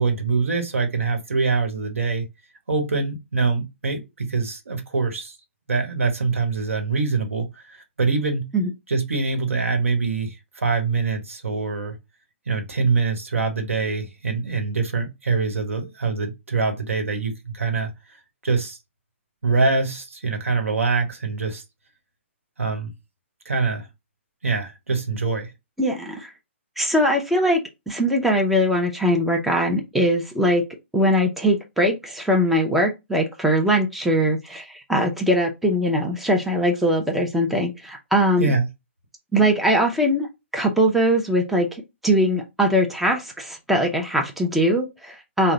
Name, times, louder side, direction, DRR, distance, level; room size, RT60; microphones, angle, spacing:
voice 1, 0.0-2.3 2.7-5.4 5.7-8.5 8.9-11.9 12.5-17.9 18.4-18.8 19.4-21.6 22.6-22.9 23.4-23.9 24.4-25.5 38.4-38.7, right 4 dB, 90° right, 1.2 m, -24 dB
voice 2, 25.8-26.3 26.8-30.6 30.9-38.5 39.3-40.3 40.5-41.7 42.0-45.5, equal, ahead, 0.7 m, -21 dB
3.8 x 2.2 x 3.8 m
hypercardioid pair, 140°, 7 cm